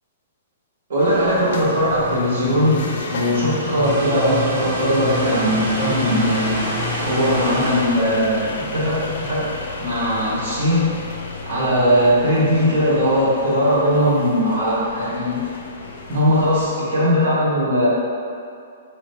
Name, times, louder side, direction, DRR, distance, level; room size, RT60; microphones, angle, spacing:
voice 1, 0.9-6.6 7.0-9.5 9.8-10.9 11.4-15.4 16.1-17.9, equal, 60° right, -9 dB, 1.4 m, -19 dB
sound 1, 1.0-16.7, left 3 dB, 70° left, 0.4 m, -33 dB
sound 2, 1.7-7.6, left 1 dB, 5° right, 0.3 m, -31 dB
sound 3, 3.8-8.0, right 2 dB, 75° right, 0.7 m, -28 dB
3.0 x 2.6 x 3.3 m, 2.4 s
hypercardioid pair, 155°, 0 cm